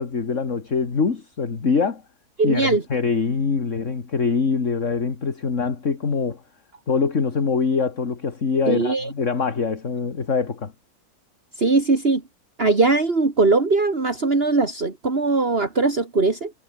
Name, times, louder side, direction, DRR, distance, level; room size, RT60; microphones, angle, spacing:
voice 1, 0.0-2.0 2.4-6.4 6.9-10.7, left 5 dB, 55° left, 2.4 m, -24 dB
voice 2, 2.4-2.8 8.7-9.1 11.6-12.2 12.6-16.5, right 3 dB, 40° right, 3.0 m, -20 dB
omnidirectional pair, 1.6 m